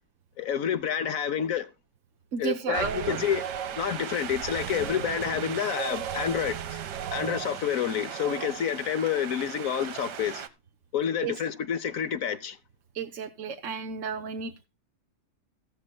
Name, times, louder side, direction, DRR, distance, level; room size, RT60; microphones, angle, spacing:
voice 1, 0.4-1.7 2.4-3.4 3.7-6.8 7.1-10.4 10.9-12.6, left 8 dB, 60° left, 1.1 m, -29 dB
voice 2, 2.3-3.2 11.2-11.3 12.9-14.6, right 6 dB, 55° right, 1.1 m, -32 dB
Wind, 2.7-10.5, right 9 dB, 80° right, 1.6 m, -36 dB
15.0 x 13.0 x 2.2 m
omnidirectional pair, 1.8 m